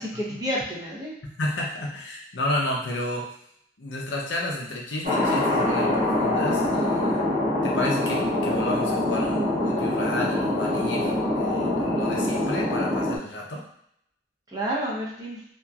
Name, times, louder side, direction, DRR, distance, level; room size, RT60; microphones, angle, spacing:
voice 1, 0.0-1.1 14.5-15.4, equal, 20° right, -5 dB, 0.7 m, -30 dB
voice 2, 1.2-3.4 3.8-7.3 7.6-13.7, left 1 dB, 85° left, -2 dB, 0.7 m, -31 dB
Thunder, 5.0-13.2, left 1 dB, 50° right, 0.9 m, -24 dB
2.9 x 2.5 x 2.3 m, 0.72 s
head